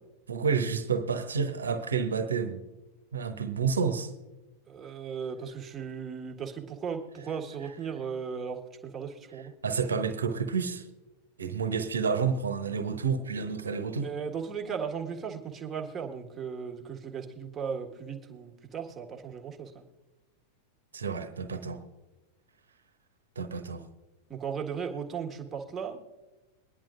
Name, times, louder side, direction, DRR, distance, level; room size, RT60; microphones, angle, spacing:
voice 1, 0.3-2.6 3.1-4.1 9.6-10.9 11.4-14.1 20.9-21.8 23.4-23.8, right 6 dB, 70° right, 1.0 m, -29 dB
voice 2, 4.7-9.5 14.0-19.8 24.3-26.0, right 6 dB, 20° right, 1.6 m, -36 dB
22.5 x 10.5 x 2.5 m
figure-of-eight pair, 90°, 0 cm